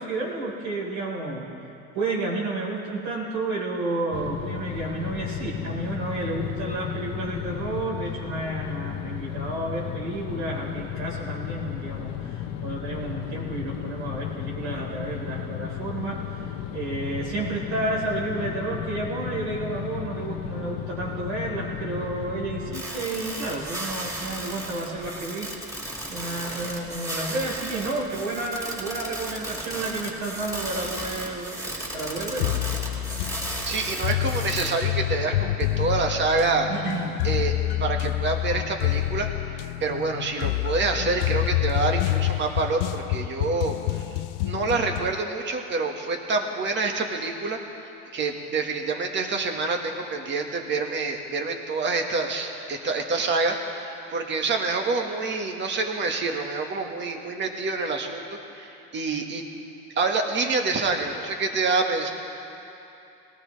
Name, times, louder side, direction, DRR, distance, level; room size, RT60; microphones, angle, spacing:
voice 1, 0.0-1.5 1.9-25.8 26.1-31.6 31.9-32.6 36.7-37.2, right 2 dB, 70° right, -6 dB, 4.0 m, -31 dB
sound 1, 4.1-22.8, left 10 dB, 50° left, 0.9 m, -34 dB
sound 2, 22.7-34.7, right 1 dB, 10° right, 4.2 m, -35 dB
sound 3, 32.4-45.2, left 16 dB, 90° left, 0.5 m, -27 dB
voice 2, 33.3-36.7 37.2-37.5 37.8-44.0 44.4-47.6 48.1-58.2 58.5-59.4 59.9-62.1, right 3 dB, 30° right, 3 dB, 1.6 m, -27 dB
22.0 x 17.5 x 3.3 m, 2.8 s
cardioid pair, 135°, 35 cm